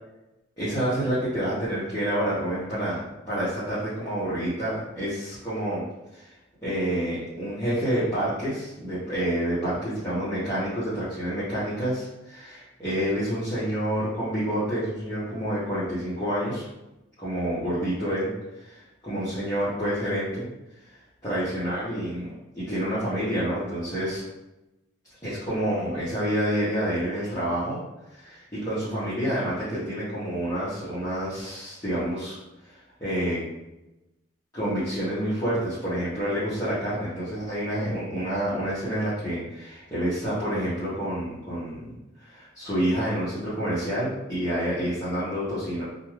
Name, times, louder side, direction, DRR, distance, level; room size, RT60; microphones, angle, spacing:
voice 1, 0.6-5.8 6.1-6.3 6.6-16.6 17.2-20.5 21.2-22.3 22.5-24.2 25.2-27.8 28.1-32.4 32.6-32.7 33.0-33.4 34.5-41.8 42.2-45.8, equal, 15° left, -13 dB, 0.9 m, -28 dB
2.6 x 2.3 x 3.1 m, 0.96 s
head